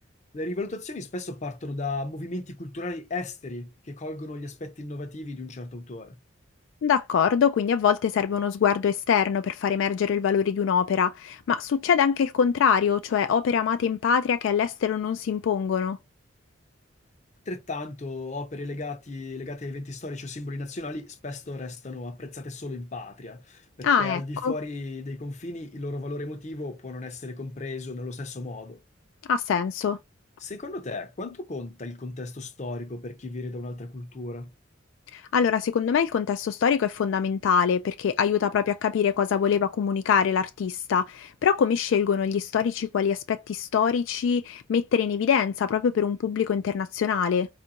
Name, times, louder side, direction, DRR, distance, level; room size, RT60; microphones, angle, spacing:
voice 1, 0.3-6.2 17.5-28.8 30.4-34.5, left 2 dB, 35° left, 0.6 m, -35 dB
voice 2, 6.8-16.0 23.8-24.5 29.3-30.0 35.1-47.5, left 7 dB, 70° left, 0.3 m, -24 dB
4.4 x 2.5 x 2.8 m
head